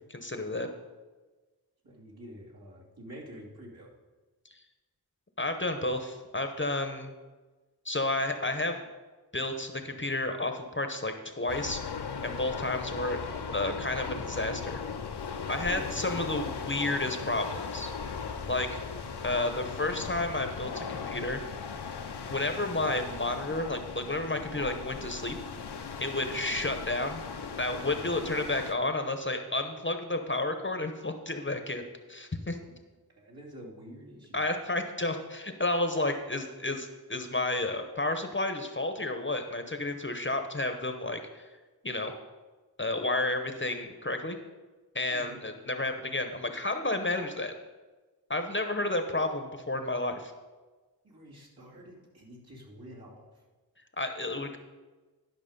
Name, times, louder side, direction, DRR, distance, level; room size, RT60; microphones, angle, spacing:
voice 1, 0.2-0.7 4.5-4.6 5.4-7.1 7.8-8.9 9.3-12.0 12.2-13.2 13.5-14.8 15.5-17.9 18.5-18.8 19.2-21.4 22.3-25.4 26.0-27.2 27.6-31.8 32.1-32.6 34.3-41.5 41.8-42.1 42.8-44.4 44.9-47.5 48.3-50.3 54.0-54.6, left 2 dB, 30° left, 6 dB, 0.8 m, -31 dB
voice 2, 1.8-3.9 15.7-16.2 33.2-34.4 45.1-45.4 51.0-53.3, equal, 65° right, -6 dB, 3.0 m, -47 dB
sound 1, 11.5-28.7, left 5 dB, 85° left, 0.7 m, -38 dB
11.0 x 5.9 x 5.2 m, 1.2 s
wide cardioid pair, 65°, 39 cm